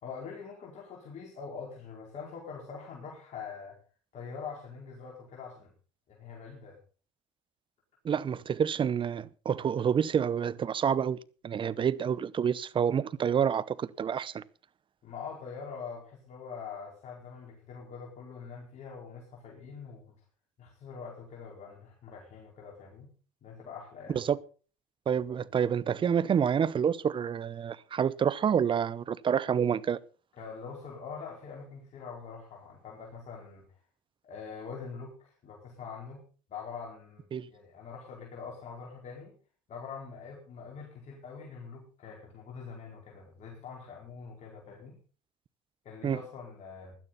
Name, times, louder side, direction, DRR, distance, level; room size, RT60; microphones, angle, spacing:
voice 1, 0.0-3.8 4.1-5.7 6.1-6.8 15.0-20.1 20.6-23.1 23.4-24.2 30.3-33.7 34.2-36.2 36.5-39.3 39.7-45.0 45.8-46.9, left 5 dB, 50° left, 4.7 m, -44 dB
voice 2, 8.0-11.2 11.4-14.4 24.1-24.4 25.1-30.0 37.3-37.5 46.0-46.2, right 8 dB, 35° right, 0.8 m, -28 dB
16.5 x 12.0 x 4.1 m
supercardioid pair, 90°, 15 cm